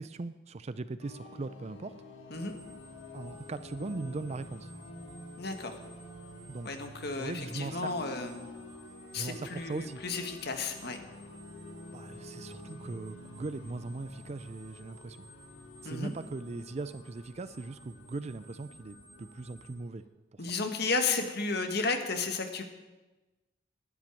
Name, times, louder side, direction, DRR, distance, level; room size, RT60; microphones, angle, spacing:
voice 1, 0.0-1.9 3.1-4.7 6.5-6.7 7.2-7.9 9.1-10.0 11.9-15.2 15.8-20.0 20.3-20.5, right 3 dB, 35° right, 14 dB, 0.4 m, -39 dB
sound 1, 1.0-20.1, left 1 dB, 85° left, 1.9 m, -49 dB
sound 2, 2.3-19.7, right 1 dB, 10° right, 2.4 m, -57 dB
voice 2, 5.4-5.7 6.6-8.5 9.1-11.0 15.8-16.1 20.4-22.6, left 4 dB, 55° left, 6 dB, 1.6 m, -33 dB
11.5 x 9.1 x 9.1 m, 1.2 s
head